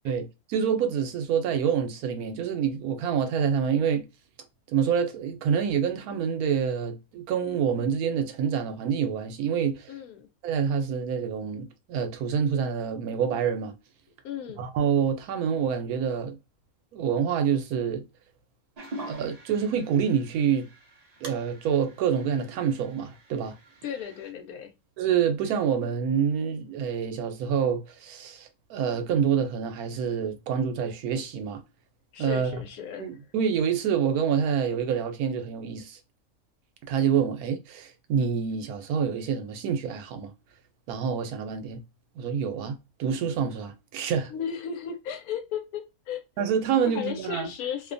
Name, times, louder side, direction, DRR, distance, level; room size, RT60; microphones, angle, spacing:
voice 1, 0.0-4.1 4.7-9.9 10.4-13.8 14.6-16.4 16.9-18.0 19.1-20.7 21.2-23.5 25.0-31.6 32.2-32.6 33.0-36.0 36.9-40.3 40.9-41.8 42.2-44.3 46.4-47.5, right 7 dB, 85° right, 1.1 m, -27 dB
voice 2, 9.9-10.3 14.2-14.7 23.8-24.7 32.1-33.1 44.3-46.2 46.8-47.9, left 8 dB, 90° left, 1.1 m, -35 dB
sound 1, 18.8-24.3, right 1 dB, 45° right, 0.5 m, -45 dB
2.7 x 2.1 x 2.5 m
omnidirectional pair, 1.5 m